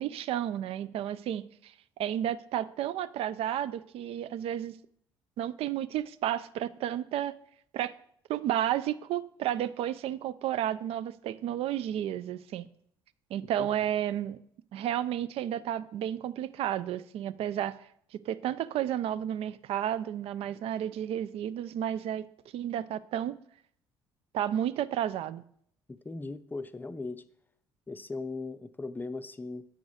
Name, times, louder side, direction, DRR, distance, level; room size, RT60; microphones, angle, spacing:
voice 1, 0.0-1.7 2.0-4.8 5.4-7.3 7.7-7.9 8.3-12.7 13.3-14.4 14.7-17.8 18.1-22.3 22.5-23.3 24.3-25.4, right 11 dB, 55° right, 0.4 m, -32 dB
voice 2, 25.9-27.2 27.9-29.7, left 3 dB, 15° left, 0.5 m, -38 dB
7.8 x 4.8 x 4.0 m
figure-of-eight pair, 50°, 12 cm